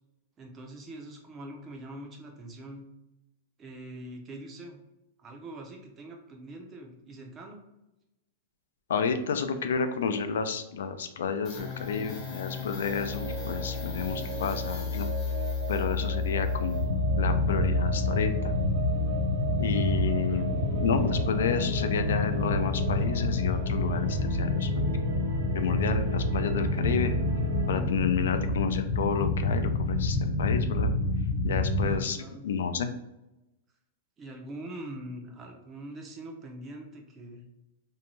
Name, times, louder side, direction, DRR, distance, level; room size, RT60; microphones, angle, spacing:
voice 1, 0.4-2.8 3.6-4.8 5.2-7.6 20.2-20.5 31.8-32.5 34.2-37.4, right 1 dB, 20° right, 2 dB, 0.5 m, -43 dB
voice 2, 8.9-15.1 15.7-16.9 17.2-18.5 19.6-24.9 25.5-27.2 27.7-30.9 31.4-32.2 32.4-32.9, left 6 dB, 85° left, 8 dB, 0.4 m, -31 dB
sound 1, 11.4-19.9, left 6 dB, 25° left, 0.7 m, -33 dB
sound 2, 12.9-27.8, right 5 dB, 75° right, 0.7 m, -39 dB
sound 3, 15.8-32.0, left 2 dB, 50° left, 0.9 m, -28 dB
2.6 x 2.2 x 3.0 m, 0.93 s
supercardioid pair, 165°, 0 cm